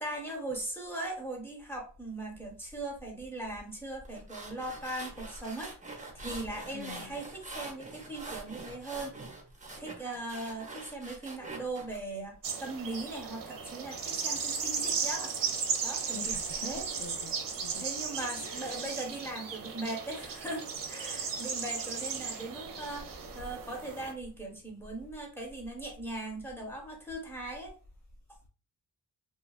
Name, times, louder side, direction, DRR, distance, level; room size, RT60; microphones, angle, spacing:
voice 1, 0.0-5.7 6.1-9.2 9.8-15.3 15.8-16.9 17.8-27.7, right 2 dB, 5° left, 0.9 m, -39 dB
sound 1, 4.1-12.0, right 3 dB, 20° right, 0.6 m, -45 dB
voice 2, 6.7-7.1 16.1-16.7 17.0-17.8 18.4-18.9, left 5 dB, 45° left, 0.5 m, -46 dB
sound 2, 12.4-24.1, right 6 dB, 55° right, 0.6 m, -36 dB
2.9 x 2.3 x 2.3 m
wide cardioid pair, 90°, 40 cm